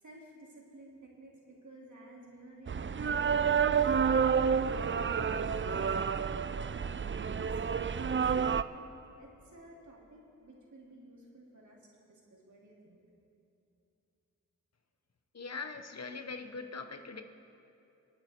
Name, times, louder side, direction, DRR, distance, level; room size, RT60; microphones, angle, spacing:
voice 1, 0.0-4.3 4.6-7.9 8.5-11.8 12.1-13.0, right 1 dB, 65° right, -2 dB, 3.0 m, -53 dB
sound 1, 2.7-8.6, right 6 dB, 40° right, 0.5 m, -29 dB
voice 2, 15.3-17.2, left 4 dB, 50° left, 7 dB, 1.1 m, -41 dB
26.5 x 8.9 x 4.5 m, 2.8 s
cardioid pair, 50°, 32 cm